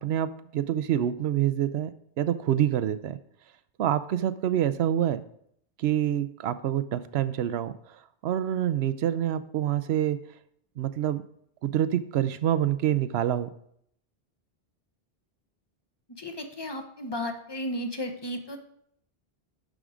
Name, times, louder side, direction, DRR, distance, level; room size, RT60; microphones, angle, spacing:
voice 1, 0.0-1.9 2.2-3.2 3.8-5.2 5.8-7.7 8.2-10.2 10.8-11.2 11.6-13.5, right 11 dB, 85° right, 12 dB, 0.8 m, -26 dB
voice 2, 16.2-18.6, left 1 dB, 25° left, 5 dB, 0.8 m, -34 dB
11.5 x 3.8 x 4.9 m, 0.69 s
omnidirectional pair, 1.0 m